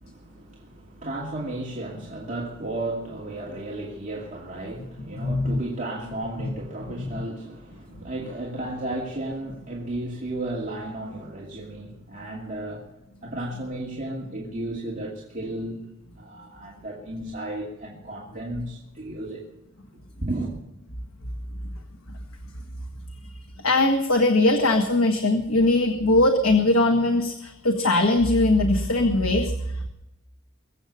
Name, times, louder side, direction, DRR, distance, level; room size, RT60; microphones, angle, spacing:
voice 1, 0.0-12.9 13.2-15.8 16.2-19.4 20.2-20.5, right 1 dB, 35° right, 2.5 m, -34 dB
voice 2, 5.2-5.6 7.1-7.2 23.6-29.9, left 2 dB, 75° left, 1.5 m, -21 dB
22.5 x 8.1 x 6.9 m
head